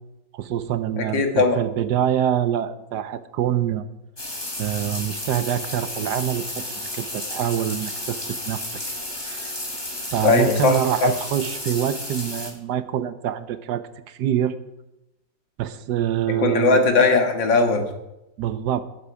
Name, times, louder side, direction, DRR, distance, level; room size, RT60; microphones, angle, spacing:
voice 1, 0.3-3.8 4.6-8.7 9.3-9.5 10.1-14.6 15.6-16.8 18.4-18.8, right 10 dB, 70° right, 13 dB, 1.2 m, -25 dB
voice 2, 1.0-1.6 10.2-11.1 16.4-17.9, left 3 dB, 85° left, 5 dB, 2.3 m, -19 dB
sound 1, 4.2-12.5, left 1 dB, 15° left, 1.9 m, -32 dB
19.0 x 7.7 x 4.8 m, 0.93 s
omnidirectional pair, 2.0 m